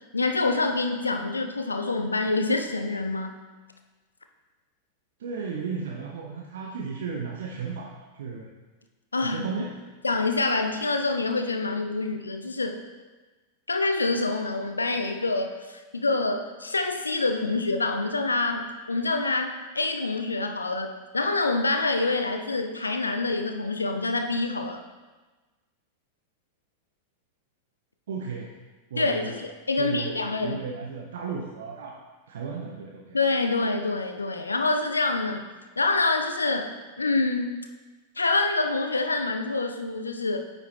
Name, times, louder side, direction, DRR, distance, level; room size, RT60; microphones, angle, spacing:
voice 1, 0.1-3.3 9.1-9.4 10.0-12.8 13.7-24.8 29.0-30.6 33.1-35.4 35.8-37.6 38.2-40.4, left 3 dB, 80° left, 6 dB, 0.5 m, -26 dB
voice 2, 5.2-8.5 9.2-9.8 28.1-28.5 28.9-29.4 29.7-32.0 32.3-33.2, right 5 dB, 60° right, 0 dB, 0.6 m, -35 dB
8.9 x 5.1 x 3.1 m, 1.3 s
figure-of-eight pair, 90°, 0 cm